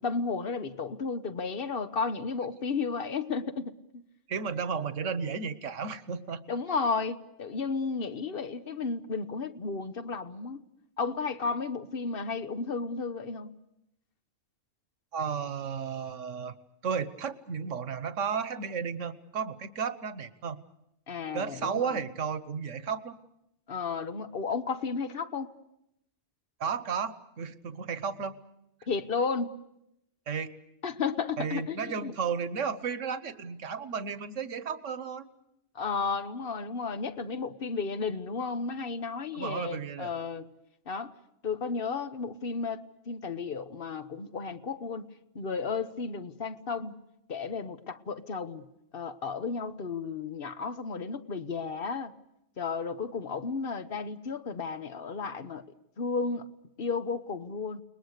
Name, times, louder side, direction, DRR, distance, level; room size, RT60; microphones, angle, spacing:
voice 1, 0.0-3.7 6.5-10.6 11.0-13.5 21.1-22.0 23.7-25.5 28.9-29.6 30.8-32.1 35.7-40.5 40.9-41.1 41.4-45.1 45.3-46.9 47.3-48.7 48.9-52.1 52.6-55.7 56.0-56.5 56.8-57.8, left 4 dB, 50° left, 1.2 m, -33 dB
voice 2, 4.3-6.5 15.1-16.5 16.8-20.6 21.3-23.2 26.6-28.4 30.3-30.5 31.4-35.3 39.3-40.1, right 6 dB, 80° right, 1.4 m, -33 dB
30.0 x 20.5 x 6.6 m
omnidirectional pair, 1.3 m